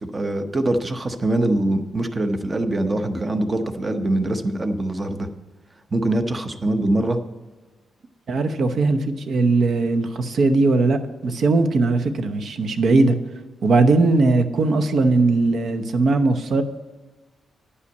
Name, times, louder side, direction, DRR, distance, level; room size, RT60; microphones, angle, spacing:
voice 1, 0.0-5.3 5.9-7.2, right 1 dB, 20° right, 8 dB, 0.7 m, -23 dB
voice 2, 8.3-13.1 13.6-16.6, right 3 dB, 55° right, 9 dB, 0.8 m, -19 dB
9.6 x 5.7 x 8.0 m, 1.3 s
wide cardioid pair, 140°, 0 cm